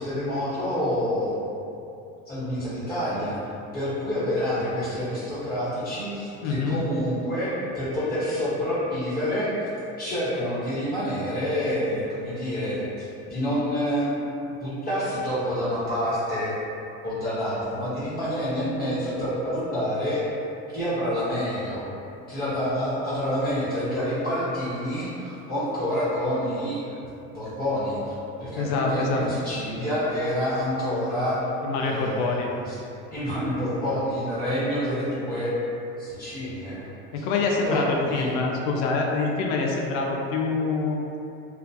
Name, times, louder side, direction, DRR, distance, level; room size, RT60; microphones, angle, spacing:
voice 1, 0.0-1.4 2.3-3.4 3.7-9.7 10.0-14.1 14.4-16.5 17.0-20.2 20.7-21.9 22.3-26.8 27.3-31.4 31.8-32.8 33.1-35.5 36.0-36.9 37.2-37.3 37.6-38.4, equal, 25° left, -12 dB, 1.1 m, -28 dB
voice 2, 6.4-6.8 28.6-29.2 31.6-32.5 37.1-41.0, left 4 dB, 80° left, 0 dB, 0.5 m, -25 dB
2.3 x 2.2 x 2.6 m, 2.8 s
supercardioid pair, 90°, 33 cm